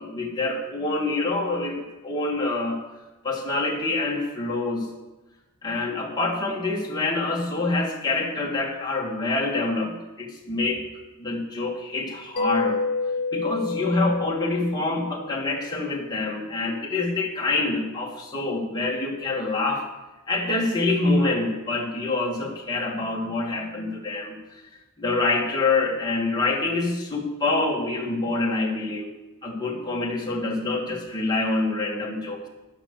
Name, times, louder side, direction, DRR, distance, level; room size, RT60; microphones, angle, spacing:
voice 1, 0.0-1.8 2.0-2.8 3.2-4.9 5.6-10.9 11.2-12.8 13.3-19.9 20.3-24.4 25.0-29.1 29.4-32.4, left 2 dB, 20° left, -3 dB, 2.3 m, -26 dB
Mallet percussion, 12.4-15.8, left 4 dB, 50° left, 0.8 m, -29 dB
11.5 x 9.0 x 6.8 m, 1.1 s
head